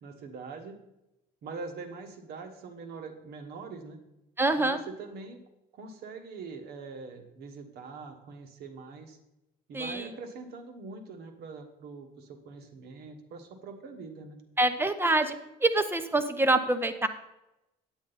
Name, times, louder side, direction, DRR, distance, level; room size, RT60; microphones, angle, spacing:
voice 1, 0.0-0.8 1.4-4.0 4.6-5.4 5.7-9.2 9.7-14.4, right 4 dB, 75° right, 6 dB, 1.4 m, -43 dB
voice 2, 4.4-4.8 9.7-10.1 14.6-15.3 15.6-17.1, right 2 dB, 15° right, 10 dB, 0.8 m, -25 dB
8.8 x 8.7 x 4.1 m, 0.91 s
cardioid pair, 110°, 17 cm